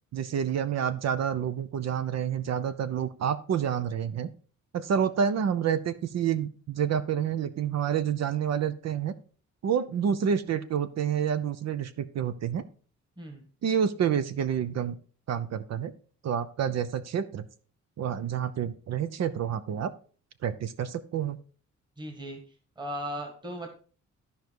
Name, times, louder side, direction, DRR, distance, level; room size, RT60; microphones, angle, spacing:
voice 1, 0.1-4.3 4.7-9.1 9.6-12.6 13.6-14.9 15.3-15.9 16.2-17.4 18.0-19.9 20.4-21.4, right 8 dB, 60° right, 13 dB, 0.7 m, -28 dB
voice 2, 22.0-22.4 22.8-23.7, equal, 15° right, 4 dB, 1.7 m, -37 dB
13.0 x 5.3 x 4.7 m, 0.41 s
wide cardioid pair, 160°, 29 cm